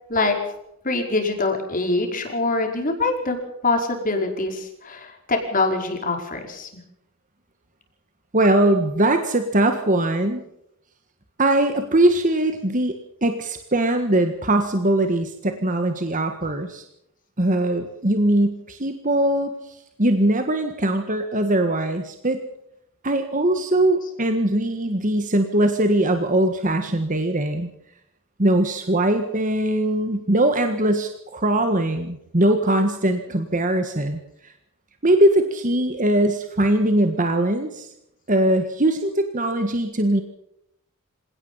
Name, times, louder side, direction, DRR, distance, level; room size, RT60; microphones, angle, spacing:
voice 1, 0.8-3.4 3.6-6.8 24.0-24.1, left 3 dB, 40° left, 3 dB, 5.0 m, -24 dB
voice 2, 8.3-10.4 11.4-16.8 17.4-22.4 23.0-27.7 28.4-34.5 35.0-37.9 38.3-40.2, right 1 dB, 35° right, 6 dB, 1.7 m, -21 dB
26.5 x 18.0 x 5.7 m, 0.78 s
head